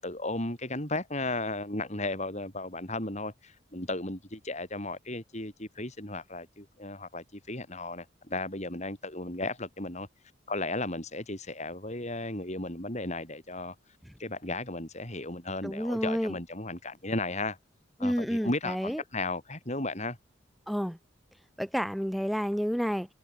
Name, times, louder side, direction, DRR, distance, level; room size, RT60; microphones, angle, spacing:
voice 1, 0.0-10.1 10.5-13.8 14.2-17.6 18.0-20.2, left 2 dB, 35° left, 6.9 m, -35 dB
voice 2, 15.6-16.4 18.0-19.0 20.7-21.0 21.6-23.1, equal, ahead, 7.9 m, -30 dB
head